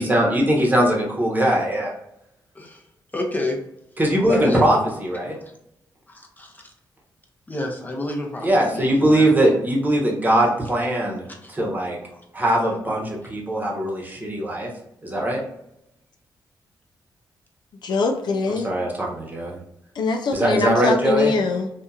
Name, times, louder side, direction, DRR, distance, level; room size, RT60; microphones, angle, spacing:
voice 1, 0.0-1.9 4.0-5.4 8.4-12.0 12.3-14.7 15.0-15.4 18.6-19.6 20.3-21.3, right 1 dB, 20° right, -2 dB, 1.0 m, -21 dB
voice 2, 3.1-3.6 4.3-4.6 5.4-5.5 6.1-6.7 7.5-9.7 11.4-11.5 12.1-12.2 12.5-12.7, left 1 dB, 20° left, 0 dB, 0.7 m, -29 dB
voice 3, 17.8-18.7 20.0-21.7, left 4 dB, 65° left, 4 dB, 0.4 m, -23 dB
2.7 x 2.4 x 2.3 m, 0.82 s
cardioid pair, 65°, 8 cm